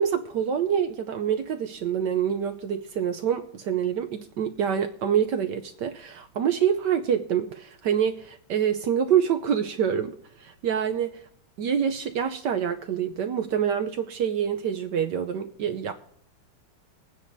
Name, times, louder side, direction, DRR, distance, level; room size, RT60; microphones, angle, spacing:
voice 1, 0.0-10.1 10.4-11.2 11.6-15.9, right 8 dB, 70° right, 7 dB, 1.1 m, -26 dB
22.0 x 9.4 x 2.7 m, 0.65 s
omnidirectional pair, 2.4 m